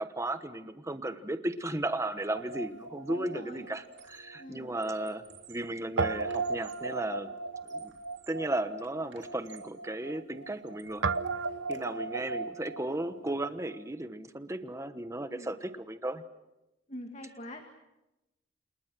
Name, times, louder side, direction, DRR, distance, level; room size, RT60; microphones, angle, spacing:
voice 1, 0.0-5.2 5.5-7.3 7.7-7.9 8.3-11.1 11.7-16.2, right 1 dB, 15° right, 10 dB, 1.2 m, -35 dB
Guitar, 2.3-4.7 5.0-5.1 6.0-13.8, right 4 dB, 90° right, 0.9 m, -36 dB
Squeak, 2.6-2.9 3.2-4.4 4.7-7.0 7.5-8.5 8.8-9.8 10.3-11.8, right 8 dB, 65° right, 3.0 m, -58 dB
voice 2, 3.1-3.7 4.4-4.7 11.7-12.1 15.3-15.5 16.9-17.6, left 1 dB, 35° left, 5 dB, 1.9 m, -45 dB
29.5 x 28.5 x 6.2 m, 0.97 s
head